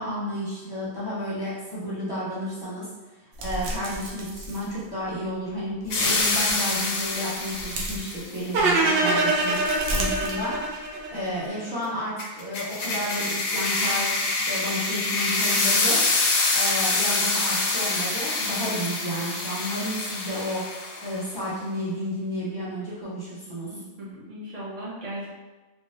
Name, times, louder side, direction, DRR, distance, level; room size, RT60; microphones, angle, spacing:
voice 1, 0.0-2.9 3.4-10.8 11.1-16.0 16.5-20.6 21.0-23.7, equal, 20° left, -9 dB, 0.8 m, -31 dB
sound 1, 3.3-5.3 5.7-6.6 7.0-8.8 9.2-11.0 11.3-11.5, right 1 dB, 85° right, 1.0 m, -35 dB
sound 2, 5.9-8.2 12.2-21.1, left 3 dB, 90° left, 1.1 m, -26 dB
sound 3, 8.5-11.7, right 2 dB, 65° right, 0.6 m, -24 dB
voice 2, 23.7-25.3, right 1 dB, 35° right, -10 dB, 0.9 m, -37 dB
3.1 x 2.5 x 2.8 m, 1.2 s
omnidirectional pair, 1.4 m